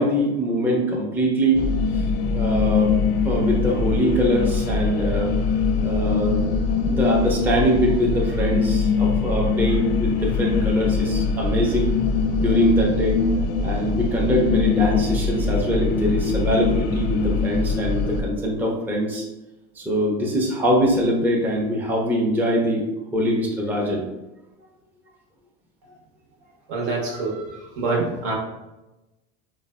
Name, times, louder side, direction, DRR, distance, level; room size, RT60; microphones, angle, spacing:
voice 1, 0.0-1.6 1.9-2.0 2.3-3.0 3.2-5.3 5.8-6.6 6.8-11.9 12.4-13.2 13.6-19.2 19.8-22.8 23.1-24.0 27.0-27.1, equal, 5° right, -3 dB, 0.4 m, -23 dB
sound 1, 1.5-18.2, left 4 dB, 50° left, 0.4 m, -22 dB
voice 2, 26.7-27.5 27.8-28.3, right 3 dB, 75° right, -1 dB, 1.0 m, -25 dB
3.1 x 2.1 x 2.2 m, 1.0 s
supercardioid pair, 110°, 32 cm